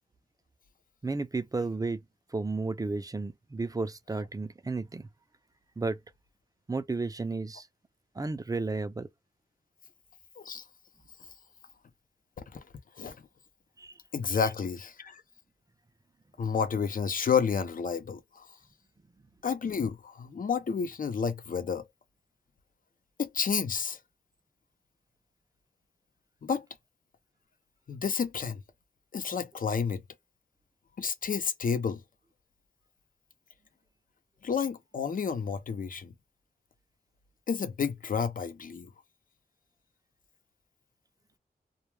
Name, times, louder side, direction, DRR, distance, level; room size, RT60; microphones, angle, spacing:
voice 1, 1.0-2.0 2.3-5.1 5.8-6.0 6.7-7.7 8.2-9.1 13.8-13.9, right 3 dB, 20° right, 0.4 m, -33 dB
voice 2, 14.1-15.2 16.4-18.5 19.4-21.8 23.2-24.0 26.4-26.7 27.9-28.6 29.1-30.0 31.0-32.0 34.4-36.1 37.5-38.9, left 6 dB, 60° left, 0.5 m, -30 dB
2.2 x 2.2 x 3.1 m
wide cardioid pair, 90°, 16 cm